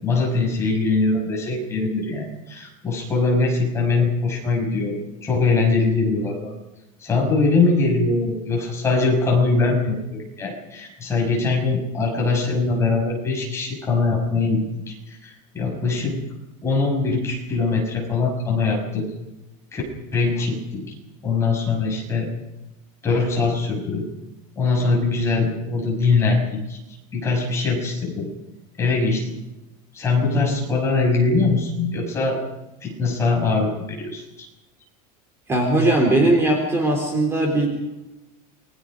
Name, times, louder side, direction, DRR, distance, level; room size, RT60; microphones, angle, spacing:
voice 1, 0.0-5.0 5.2-6.5 7.0-16.2 16.6-19.1 19.7-19.8 20.1-20.9 21.2-22.3 23.0-24.0 24.6-26.8 27.1-28.3 28.8-29.3 29.9-32.5 32.8-34.5, left 3 dB, 15° left, -1 dB, 6.3 m, -22 dB
voice 2, 35.5-37.7, right 1 dB, 15° right, 1 dB, 3.9 m, -19 dB
28.5 x 22.5 x 5.1 m, 0.97 s
cardioid pair, 180°, 18 cm